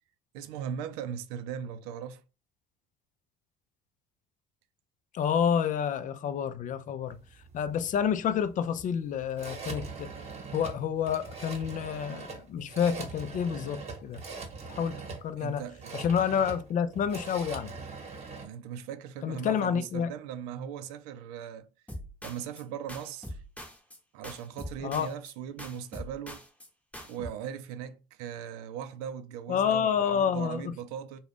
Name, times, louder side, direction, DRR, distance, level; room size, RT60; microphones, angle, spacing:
voice 1, 0.3-2.2 15.4-15.9 18.4-21.7 22.2-23.4 24.1-26.5 27.0-31.2, right 8 dB, 80° right, 0.4 m, -39 dB
voice 2, 5.1-7.2 7.5-10.1 10.5-14.2 14.7-15.0 15.2-15.6 15.9-17.7 19.2-20.1 24.8-25.1 29.5-30.7, left 8 dB, 45° left, 0.4 m, -29 dB
sound 1, 7.1-18.5, right 4 dB, 35° right, 1.1 m, -42 dB
sound 2, 21.9-22.6 22.9-24.0 24.2-25.3 25.6-26.7 26.9-27.3, equal, 5° left, 0.9 m, -43 dB
2.4 x 2.2 x 3.4 m
hypercardioid pair, 75°, 19 cm